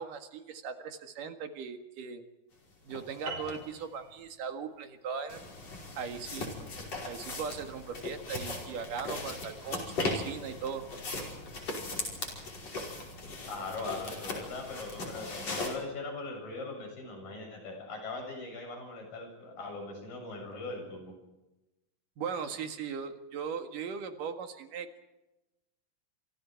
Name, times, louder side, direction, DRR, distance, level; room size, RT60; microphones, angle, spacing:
voice 1, 0.0-2.2 2.9-5.4 6.0-6.5 7.1-10.9 22.2-25.0, right 6 dB, 70° right, 6 dB, 3.4 m, -39 dB
sound 1, 2.9-3.0 3.5-3.6 5.3-15.7, left 2 dB, 45° left, 6.1 m, -38 dB
sound 2, 3.3-8.0, right 3 dB, 35° right, 5.6 m, -46 dB
voice 2, 13.5-21.1, left 3 dB, 75° left, 2 dB, 9.0 m, -40 dB
29.5 x 26.0 x 4.6 m, 1.0 s
omnidirectional pair, 4.0 m